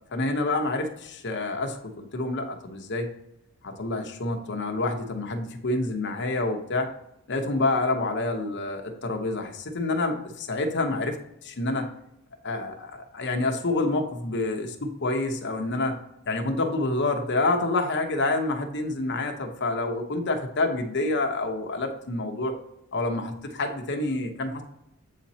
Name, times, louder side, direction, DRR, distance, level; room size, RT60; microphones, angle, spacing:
voice 1, 0.1-3.1 3.6-6.9 7.3-11.9 12.4-16.0 16.3-22.6 22.9-24.6, left 2 dB, 50° left, 4 dB, 0.8 m, -28 dB
8.2 x 4.2 x 2.7 m, 0.83 s
head